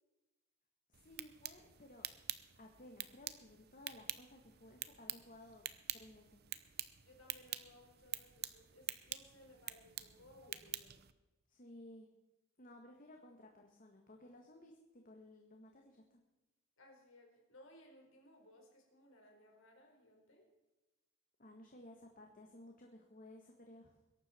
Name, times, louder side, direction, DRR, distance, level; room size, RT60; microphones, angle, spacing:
voice 1, 0.9-2.1 2.6-5.6 5.9-6.4 11.5-12.1 12.6-16.2 21.4-24.0, left 1 dB, 40° left, 2 dB, 1.6 m, -57 dB
sound 1, 0.9-11.1, right 12 dB, 50° right, 0.7 m, -47 dB
voice 2, 6.8-11.0 16.8-20.5, left 1 dB, 70° left, 1 dB, 4.2 m, -62 dB
21.5 x 11.5 x 4.4 m, 1.1 s
head